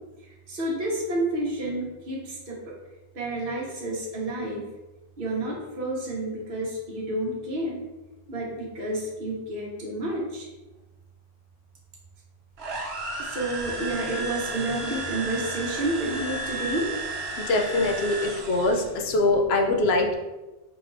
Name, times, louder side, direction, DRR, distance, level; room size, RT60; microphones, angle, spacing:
voice 1, 0.5-2.7 3.1-4.7 5.2-7.8 8.3-10.5 13.2-16.9 18.2-19.1 19.5-19.6 20.0-20.1, right 1 dB, 60° right, -3 dB, 1.2 m, -30 dB
sound 1, 12.6-18.9, right 2 dB, 80° right, 1.0 m, -33 dB
voice 2, 17.5-20.1, left 2 dB, 80° left, 2 dB, 0.9 m, -23 dB
4.8 x 3.4 x 2.6 m, 1.1 s
omnidirectional pair, 1.1 m